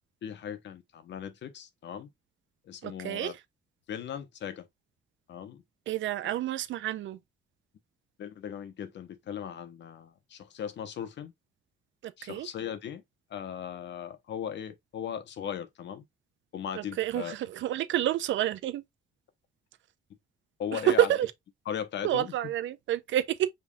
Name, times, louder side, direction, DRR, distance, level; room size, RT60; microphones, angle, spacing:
voice 1, 0.2-2.1 2.7-3.3 3.9-4.7 5.3-5.6 8.2-11.3 12.2-13.0 13.3-16.0 16.5-17.3 20.6-21.1 21.7-22.3, left 8 dB, 65° left, 1.0 m, -38 dB
voice 2, 2.8-3.3 5.9-7.2 12.0-12.5 16.7-18.8 20.7-21.3 22.0-23.5, right 12 dB, 75° right, 0.6 m, -28 dB
5.2 x 3.5 x 2.3 m
cardioid pair, 90°, 20 cm